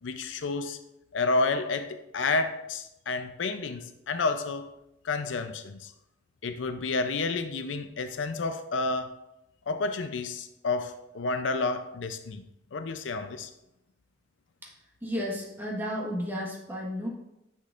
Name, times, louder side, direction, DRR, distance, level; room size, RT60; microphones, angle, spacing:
voice 1, 0.0-0.8 1.1-4.7 5.0-5.9 6.4-9.1 9.7-12.4 12.7-13.5, left 3 dB, 85° left, 9 dB, 0.5 m, -30 dB
voice 2, 15.0-17.1, equal, 10° right, -3 dB, 1.4 m, -32 dB
9.7 x 5.8 x 2.5 m, 0.87 s
head